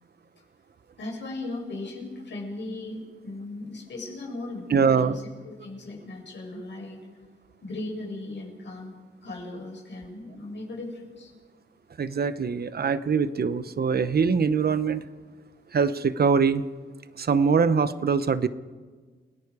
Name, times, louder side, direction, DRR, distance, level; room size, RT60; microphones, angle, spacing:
voice 1, 1.0-7.0 7.6-8.9 9.2-11.3, left 2 dB, 75° left, -1 dB, 6.8 m, -37 dB
voice 2, 4.7-5.2 12.0-15.0 15.7-16.6 17.2-18.5, right 5 dB, 55° right, 13 dB, 0.9 m, -23 dB
29.5 x 18.5 x 4.9 m, 1.5 s
cardioid pair, 80°, 19 cm